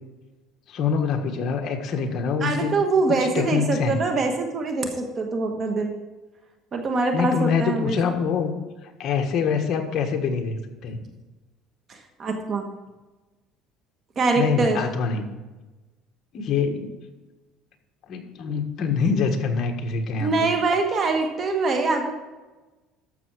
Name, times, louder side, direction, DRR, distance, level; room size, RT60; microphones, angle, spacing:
voice 1, 0.7-2.7 3.3-4.0 7.1-8.5 9.0-11.0 14.3-15.3 16.3-16.9 18.1-20.5, left 5 dB, 45° left, 3 dB, 1.4 m, -25 dB
voice 2, 2.4-5.9 6.7-8.2 11.9-12.7 14.2-14.8 20.2-22.1, right 3 dB, 35° right, 4 dB, 1.2 m, -24 dB
13.0 x 6.8 x 4.7 m, 1.2 s
cardioid pair, 140°, 0 cm